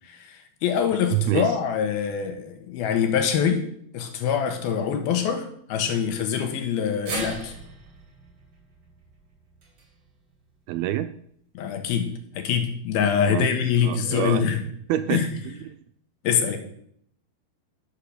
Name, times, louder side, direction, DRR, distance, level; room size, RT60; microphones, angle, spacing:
voice 1, 0.1-3.6 3.9-7.5 11.5-12.1 12.3-14.6 15.1-15.3 16.2-16.6, left 7 dB, 75° left, 5 dB, 3.1 m, -24 dB
voice 2, 1.1-1.6 10.7-11.1 13.3-13.5 13.8-14.4 14.9-15.8, right 13 dB, 80° right, 11 dB, 2.2 m, -27 dB
sound 1, 7.1-11.3 11.7-11.8 12.9-13.0, right 2 dB, 40° right, 3.7 m, -39 dB
12.0 x 6.7 x 6.7 m, 0.67 s
omnidirectional pair, 4.6 m